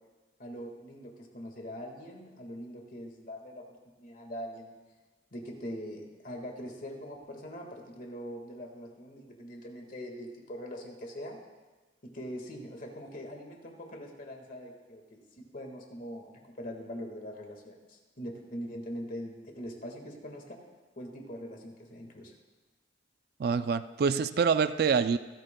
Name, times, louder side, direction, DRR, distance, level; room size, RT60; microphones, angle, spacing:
voice 1, 0.4-4.7 5.3-11.4 12.0-20.6 21.0-22.3, equal, 45° left, 2 dB, 1.7 m, -42 dB
voice 2, 23.4-25.2, right 6 dB, 55° right, 12 dB, 0.3 m, -26 dB
25.5 x 8.9 x 2.2 m, 1.3 s
head